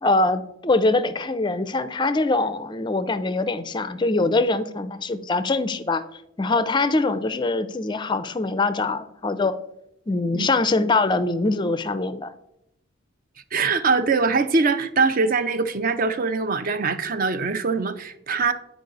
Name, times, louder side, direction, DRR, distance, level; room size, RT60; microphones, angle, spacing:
voice 1, 0.0-9.6 10.1-12.3, left 3 dB, 20° left, 0.4 m, -23 dB
voice 2, 13.5-18.5, right 4 dB, 40° right, 0.5 m, -22 dB
9.5 x 4.8 x 3.9 m
head